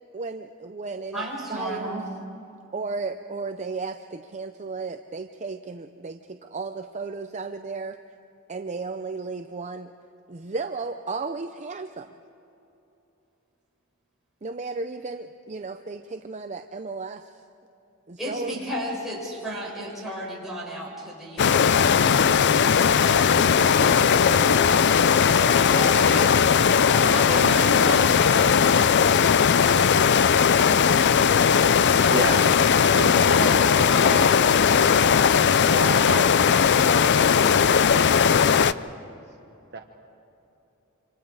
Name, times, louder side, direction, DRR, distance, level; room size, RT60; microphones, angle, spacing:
voice 1, 0.1-1.2 1.5-2.0 2.7-8.0 8.5-9.9 10.3-12.1 14.4-17.3 18.1-18.5, right 4 dB, 35° right, 7 dB, 0.6 m, -34 dB
voice 2, 1.1-2.1 18.2-22.3 22.9-28.6 31.8-32.6 32.9-35.1, right 1 dB, ahead, -5 dB, 7.1 m, -34 dB
sound 1, 21.4-38.7, left 7 dB, 55° left, 0.5 m, -18 dB
voice 3, 32.1-33.2 35.0-37.4 39.7-39.8, right 3 dB, 50° right, 3 dB, 1.3 m, -34 dB
28.0 x 26.0 x 4.9 m, 2.9 s
head